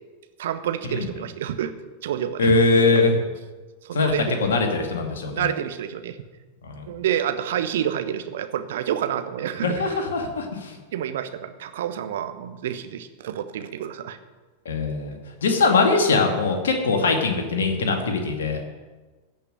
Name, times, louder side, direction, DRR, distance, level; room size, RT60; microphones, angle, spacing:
voice 1, 0.4-1.7 2.0-3.0 3.8-4.4 5.3-6.2 6.8-10.0 10.9-14.2, right 10 dB, 60° right, 9 dB, 1.1 m, -29 dB
voice 2, 2.4-3.1 3.9-4.1 4.4-5.5 6.6-6.8 9.6-10.8 14.7-18.6, left 3 dB, 65° left, 3 dB, 2.3 m, -22 dB
15.0 x 5.9 x 9.2 m, 1.3 s
figure-of-eight pair, 90°, 0 cm